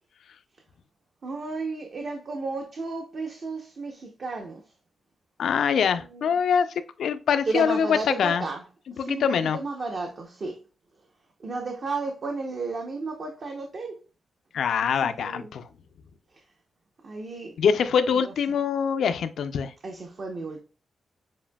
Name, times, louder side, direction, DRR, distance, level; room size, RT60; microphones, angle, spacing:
voice 1, 1.2-4.7 5.8-6.4 7.5-8.6 8.9-10.6 11.4-14.0 14.8-15.5 16.3-16.4 17.0-17.6 18.1-18.6 19.8-20.6, right 3 dB, 50° right, 0.7 m, -33 dB
voice 2, 5.4-8.4 9.0-9.6 14.5-15.7 17.6-19.7, left 7 dB, 80° left, 0.4 m, -24 dB
7.2 x 2.6 x 2.2 m
wide cardioid pair, 140°, 0 cm